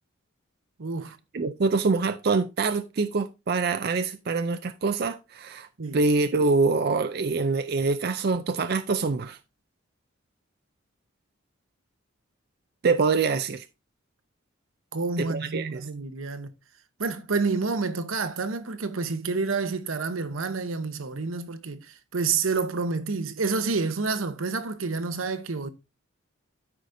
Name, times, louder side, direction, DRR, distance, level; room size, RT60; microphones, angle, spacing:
voice 1, 0.8-1.2 5.8-6.0 14.9-16.5 17.0-25.7, right 4 dB, 85° right, 0.9 m, -29 dB
voice 2, 1.3-5.7 5.9-9.4 12.8-13.7 15.2-15.8, right 4 dB, 50° right, 0.4 m, -25 dB
13.0 x 4.9 x 2.6 m
head